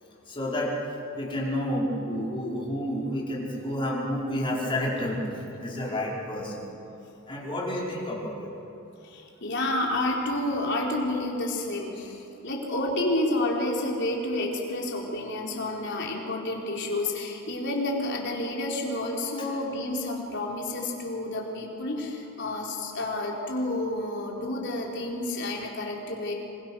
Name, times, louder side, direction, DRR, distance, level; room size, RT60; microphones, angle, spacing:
voice 1, 0.3-0.8 1.1-6.6 7.3-8.5 19.4-19.5, left 1 dB, 25° left, -4 dB, 5.4 m, -30 dB
voice 2, 9.0-26.3, left 1 dB, 55° left, -1 dB, 4.3 m, -30 dB
26.5 x 25.5 x 6.5 m, 2.9 s
head